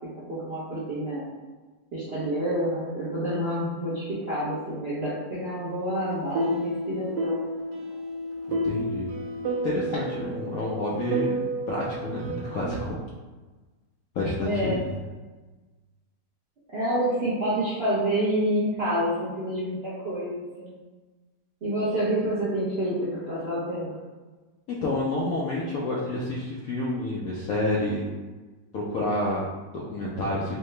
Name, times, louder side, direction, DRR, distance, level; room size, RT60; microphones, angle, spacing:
voice 1, 0.3-1.2 1.9-7.4 14.4-14.8 16.7-20.8 21.6-23.9, right 1 dB, 50° right, -10 dB, 0.8 m, -28 dB
sound 1, 6.0-12.9, right 1 dB, 75° right, 1.2 m, -31 dB
voice 2, 8.5-9.1 9.6-13.0 14.1-15.0 24.7-28.1 28.7-30.6, left 1 dB, 70° left, -5 dB, 0.9 m, -29 dB
4.6 x 2.1 x 3.2 m, 1.3 s
omnidirectional pair, 2.0 m